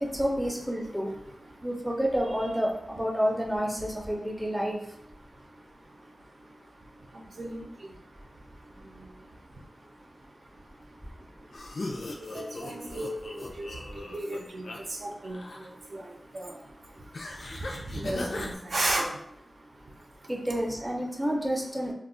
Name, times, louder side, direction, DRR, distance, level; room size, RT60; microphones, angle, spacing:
voice 1, 0.0-1.1 1.6-4.8 20.3-21.9, equal, 5° right, -1 dB, 0.5 m, -29 dB
sound 1, 11.5-14.8 15.1-15.7 17.1-18.6, left 2 dB, 70° left, 0.4 m, -38 dB
voice 2, 12.3-13.7 14.1-14.6 15.0-15.4 15.9-16.0 16.3-16.5 17.9-19.1, right 1 dB, 70° right, 0 dB, 0.5 m, -33 dB
2.2 x 2.0 x 3.7 m, 0.74 s
wide cardioid pair, 80°, 0 cm